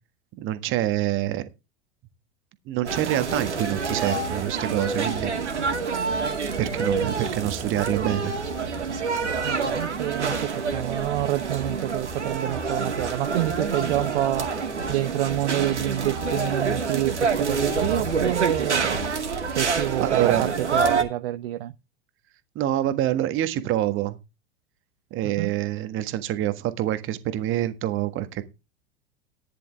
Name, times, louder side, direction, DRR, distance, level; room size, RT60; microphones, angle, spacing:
voice 1, 0.4-1.5 2.7-5.3 5.9-6.2 6.6-8.3 20.0-20.5 22.5-24.2 25.1-28.5, right 13 dB, 35° right, 1.6 m, -26 dB
sound 1, 2.8-21.0, right 5 dB, 75° right, 2.3 m, -27 dB
voice 2, 9.4-14.5 14.9-19.0 19.5-21.7 25.2-25.5, right 15 dB, 55° right, 0.8 m, -28 dB
14.5 x 10.0 x 3.5 m
figure-of-eight pair, 90°, 35 cm